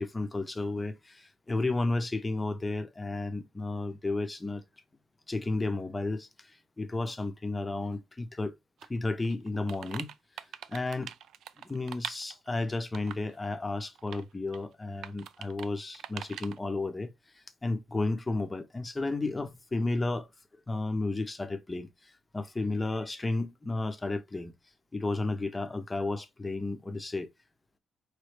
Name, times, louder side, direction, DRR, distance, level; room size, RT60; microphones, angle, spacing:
voice 1, 0.0-4.6 5.3-8.5 8.9-10.1 10.7-11.1 11.6-17.1 17.3-20.3 20.7-21.9 22.3-24.5 24.9-27.3, left 2 dB, 15° left, 0.6 m, -32 dB
sound 1, 8.8-8.9 9.2-12.5 12.9-13.3 13.8-14.2 14.5-14.6 15.0-15.7 15.9-16.6, right 9 dB, 70° right, 0.3 m, -42 dB
4.8 x 3.1 x 3.2 m
cardioid pair, 165°, 0 cm